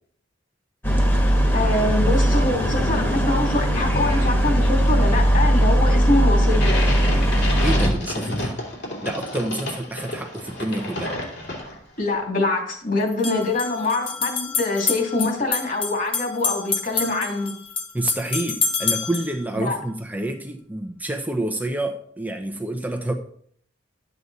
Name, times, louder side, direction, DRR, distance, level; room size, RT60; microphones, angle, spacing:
sound 1, 0.8-7.9, equal, 10° left, 1.6 m, -19 dB
voice 1, 1.5-6.8 12.0-17.5 19.6-19.8, left 2 dB, 45° left, 1 dB, 2.7 m, -24 dB
sound 2, 6.5-12.0, left 1 dB, 60° left, 3.0 m, -30 dB
voice 2, 7.6-8.6 9.0-11.2 17.9-23.1, right 1 dB, 10° right, 4 dB, 0.8 m, -28 dB
sound 3, 11.4-11.5 13.1-19.3, left 5 dB, 30° left, 1.1 m, -27 dB
12.5 x 8.1 x 4.1 m, 0.62 s
head